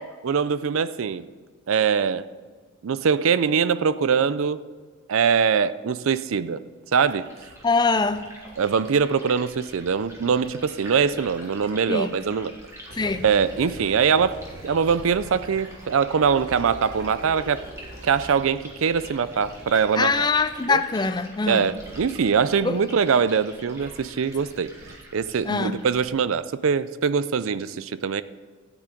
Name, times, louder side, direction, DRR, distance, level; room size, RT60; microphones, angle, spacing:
voice 1, 0.2-1.3 1.7-2.3 2.8-4.6 5.1-6.6 6.9-7.3 8.6-12.5 13.2-14.4 14.6-17.6 18.0-20.3 20.7-20.8 21.5-24.7 25.1-28.2, right 6 dB, 70° right, 0.4 m, -22 dB
Liquid, 7.0-26.1, right 1 dB, 15° right, 2.0 m, -46 dB
voice 2, 7.6-8.3 11.9-12.1 13.0-13.2 19.9-21.7 22.6-22.8 25.4-25.8, left 4 dB, 20° left, 0.4 m, -23 dB
sound 1, 12.8-23.2 23.8-23.9 24.4-24.5 24.8-24.9, right 1 dB, 40° right, 1.9 m, -44 dB
13.5 x 9.1 x 3.9 m
head